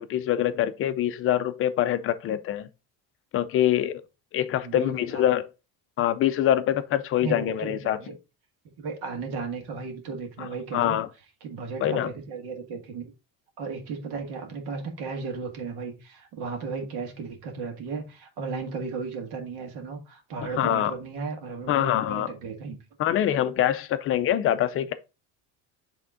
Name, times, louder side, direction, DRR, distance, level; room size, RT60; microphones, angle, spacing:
voice 1, 0.0-2.7 3.3-4.0 4.3-5.5 6.0-8.0 10.4-11.1 11.8-12.1 20.6-20.9 21.7-22.3 23.0-24.9, left 11 dB, 35° left, 0.4 m, -24 dB
voice 2, 4.6-5.3 7.2-8.2 8.8-11.0 11.4-13.1 13.6-22.8, right 4 dB, 75° right, 1.9 m, -35 dB
8.3 x 3.5 x 3.7 m
cardioid pair, 170°, 39 cm